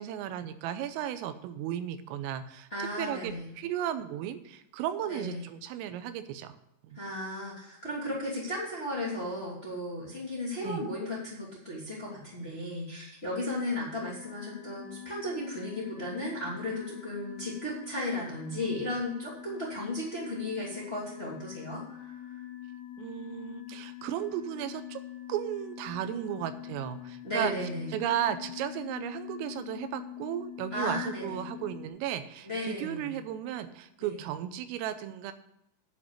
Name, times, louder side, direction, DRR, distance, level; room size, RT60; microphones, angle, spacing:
voice 1, 0.0-6.6 6.8-7.0 10.6-10.8 23.0-25.0 25.3-27.5 27.9-35.3, right 11 dB, 90° right, 11 dB, 3.4 m, -35 dB
voice 2, 2.7-3.5 5.1-5.4 6.9-22.2 27.2-27.9 30.7-31.4 32.4-33.2 34.0-34.2, left 1 dB, 15° left, -6 dB, 2.1 m, -35 dB
sound 1, 14.0-31.9, left 12 dB, 85° left, 3.5 m, -44 dB
11.0 x 5.1 x 8.2 m, 0.80 s
omnidirectional pair, 5.8 m